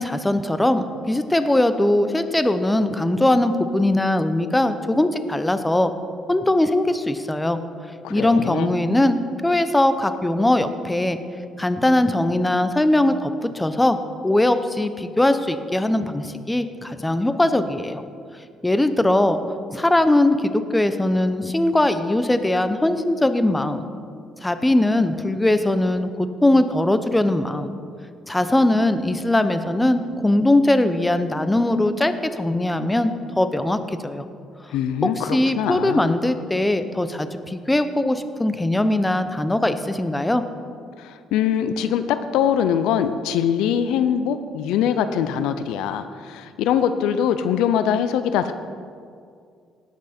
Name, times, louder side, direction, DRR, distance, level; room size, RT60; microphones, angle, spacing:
voice 1, 0.0-5.9 6.3-7.6 8.1-11.2 11.6-14.0 14.2-18.0 18.6-19.4 19.7-23.8 24.4-27.7 28.3-34.2 35.0-40.4, left 1 dB, 10° left, 10 dB, 0.7 m, -20 dB
voice 2, 8.0-8.7 34.7-36.1 41.0-48.5, left 9 dB, 85° left, 11 dB, 0.5 m, -23 dB
17.5 x 6.1 x 4.3 m, 2.2 s
cardioid pair, 90°, 0 cm